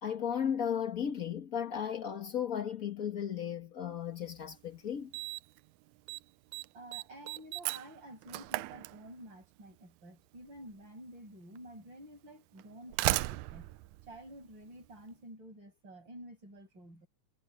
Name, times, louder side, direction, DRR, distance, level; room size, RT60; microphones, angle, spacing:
voice 1, 0.0-5.1, left 8 dB, 65° left, 0.8 m, -35 dB
Slam, 4.3-4.4 5.1-5.6 5.9-6.2 6.5-9.5 10.6-10.7 11.6-11.7 12.6-14.9, right 19 dB, 80° right, 1.7 m, -36 dB
voice 2, 6.7-13.7 14.1-17.1, right 1 dB, 35° right, 7.2 m, -50 dB
omnidirectional pair, 3.8 m